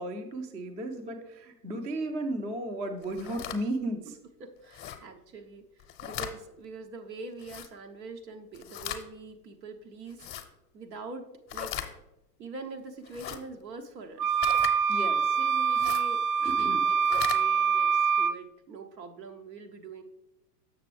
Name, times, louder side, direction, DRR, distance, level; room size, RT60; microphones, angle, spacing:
voice 1, 0.0-4.0 14.9-15.2 16.4-16.8, right 1 dB, 15° right, 5 dB, 0.4 m, -34 dB
sound 1, 3.0-3.6 4.7-5.0 5.8-6.3 7.4-7.7 8.5-9.0 10.1-10.5 11.5-11.9 13.0-13.4 14.4-14.7 15.7-16.1 16.9-17.4, left 10 dB, 25° left, 0.7 m, -37 dB
voice 2, 4.4-5.6 6.0-10.3 10.7-11.9 12.4-14.4 15.0-20.0, right 4 dB, 85° right, 5 dB, 1.0 m, -44 dB
sound 2, 14.2-18.3, right 6 dB, 65° right, 0.6 m, -25 dB
6.8 x 6.6 x 3.2 m, 0.91 s
hypercardioid pair, 100°, 50 cm